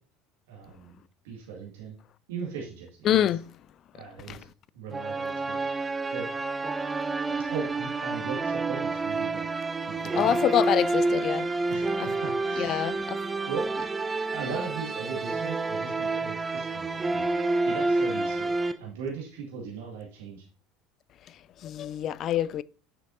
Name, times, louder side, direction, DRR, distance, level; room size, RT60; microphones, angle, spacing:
voice 1, 0.5-2.0 2.3-3.3 3.9-4.5 4.7-6.3 7.5-9.5 9.9-10.4 11.7-13.0 13.4-13.9 14.3-17.2 17.6-18.5 18.8-20.5, right 5 dB, 75° right, 2.0 m, -38 dB
voice 2, 3.0-3.4 10.2-11.5 12.0-12.1 12.6-12.9 21.6-22.6, left 11 dB, 45° left, 0.3 m, -25 dB
sound 1, 4.9-18.7, right 3 dB, 20° right, 0.8 m, -29 dB
8.6 x 6.4 x 2.7 m
hypercardioid pair, 70°, 0 cm